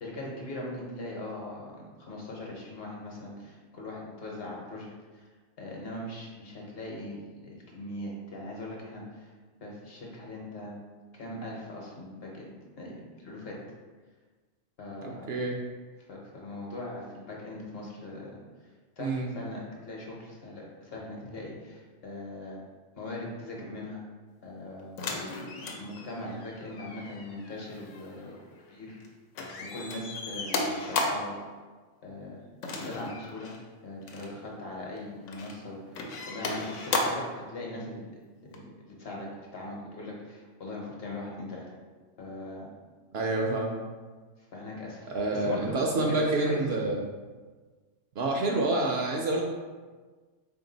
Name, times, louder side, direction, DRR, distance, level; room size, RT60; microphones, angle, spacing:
voice 1, 0.0-4.9 5.1-5.3 5.6-9.3 9.6-10.8 11.1-12.5 12.8-12.9 13.2-13.6 14.8-15.3 16.1-18.4 19.0-22.6 23.0-24.0 24.4-24.9 25.6-28.3 28.7-29.0 29.6-31.4 32.0-32.4 32.7-33.5 33.8-38.1 38.5-38.7 39.0-41.7 42.2-42.7 44.5-46.6, left 1 dB, 55° left, -2 dB, 1.0 m, -40 dB
voice 2, 15.0-15.6 19.0-19.3 43.1-43.7 45.1-47.0 48.2-49.4, right 2 dB, 65° right, -1 dB, 0.7 m, -28 dB
sound 1, 25.0-29.1 29.4-31.4 32.6-33.6 34.0-34.3 35.0-35.6 35.9-37.4 38.5-38.6, left 3 dB, 80° left, 0.9 m, -35 dB
3.6 x 2.6 x 3.8 m, 1.4 s
omnidirectional pair, 1.3 m